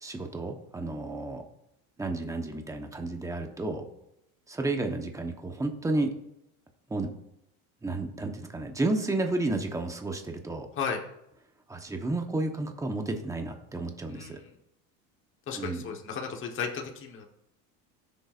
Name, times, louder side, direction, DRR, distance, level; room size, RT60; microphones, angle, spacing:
voice 1, 0.0-1.4 2.0-3.8 4.5-6.1 6.9-7.1 7.8-10.7 11.7-14.4 15.5-15.8, right 2 dB, 10° right, 4 dB, 1.0 m, -31 dB
voice 2, 14.1-14.5 15.5-17.2, left 6 dB, 30° left, 1 dB, 1.3 m, -34 dB
17.5 x 6.8 x 2.5 m, 0.83 s
supercardioid pair, 130°, 40 cm